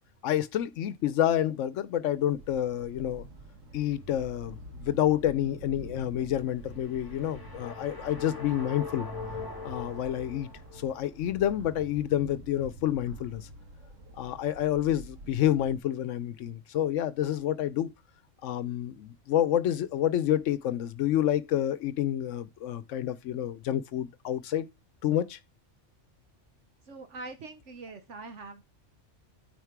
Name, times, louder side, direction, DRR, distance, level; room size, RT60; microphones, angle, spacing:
voice 1, 0.2-3.2 3.7-9.1 9.6-13.5 14.1-17.9 18.4-24.7 25.0-25.4, left 11 dB, 80° left, 1.0 m, -28 dB
sound 1, 2.3-15.8, right 2 dB, 85° right, 1.9 m, -47 dB
sound 2, 6.7-11.0, left 4 dB, 15° left, 2.0 m, -41 dB
voice 2, 26.8-28.6, right 3 dB, 70° right, 1.3 m, -43 dB
9.4 x 4.3 x 4.6 m
omnidirectional pair, 1.3 m